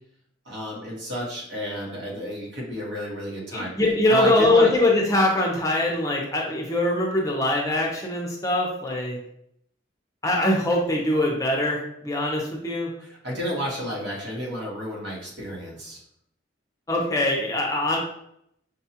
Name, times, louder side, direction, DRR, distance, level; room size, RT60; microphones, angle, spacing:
voice 1, 0.4-3.7 4.1-4.7 13.0-16.0, equal, 75° right, -3 dB, 1.3 m, -31 dB
voice 2, 3.5-9.2 10.2-12.9 16.9-18.0, left 1 dB, 15° left, -2 dB, 0.6 m, -22 dB
5.3 x 2.3 x 2.8 m, 0.73 s
head